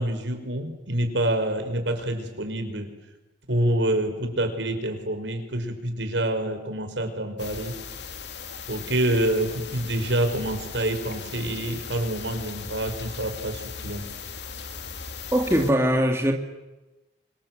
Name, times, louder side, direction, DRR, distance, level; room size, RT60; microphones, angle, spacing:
voice 1, 0.0-2.9 3.5-7.7 8.7-14.1, right 1 dB, 85° right, 5.2 m, -27 dB
sound 1, 7.4-15.7, left 5 dB, 75° left, 2.6 m, -38 dB
voice 2, 15.3-16.3, equal, 15° right, 2.3 m, -21 dB
29.0 x 25.5 x 7.8 m
head